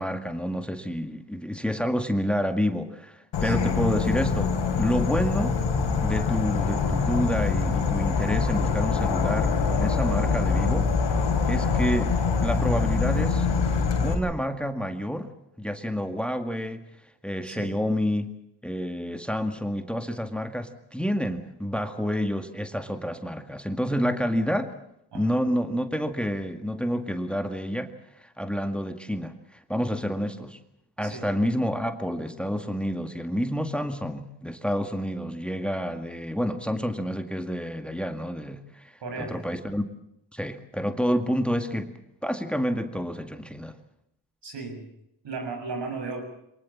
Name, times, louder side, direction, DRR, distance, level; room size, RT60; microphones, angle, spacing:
voice 1, 0.0-4.5 4.8-5.6 6.0-10.9 11.5-12.1 12.4-13.5 14.0-15.3 15.6-16.8 17.2-18.3 18.6-24.7 25.1-27.9 28.2-30.6 31.0-39.8 40.3-41.9 42.2-43.8, equal, 5° left, 7 dB, 2.0 m, -29 dB
Insect / Frog, 3.3-14.1, left 5 dB, 85° left, 3.8 m, -24 dB
voice 2, 3.4-3.8 17.4-17.8 25.1-25.4 31.0-31.3 39.0-39.4 44.4-44.8 45.2-46.2, right 4 dB, 80° right, 3 dB, 7.1 m, -35 dB
23.0 x 19.5 x 7.5 m, 0.79 s
cardioid pair, 60°, 42 cm